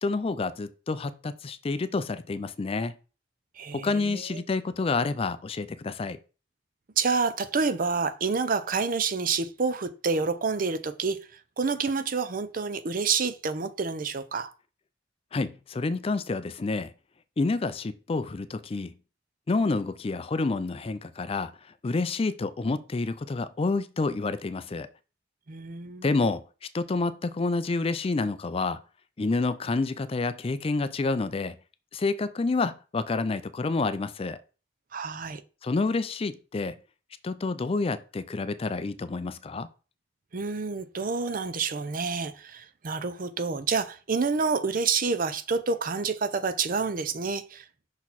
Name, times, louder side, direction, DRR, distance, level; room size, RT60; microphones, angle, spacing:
voice 1, 0.0-2.9 3.7-6.2 15.3-16.9 17.4-18.9 19.5-21.5 21.8-24.9 26.0-26.4 26.7-28.8 29.2-31.6 31.9-34.4 35.6-36.8 37.2-39.7, left 3 dB, 30° left, 0.4 m, -28 dB
voice 2, 3.6-4.4 7.0-11.2 11.6-14.5 25.5-26.3 34.9-35.4 40.3-47.6, right 4 dB, 50° right, 0.6 m, -28 dB
5.8 x 4.3 x 4.1 m
head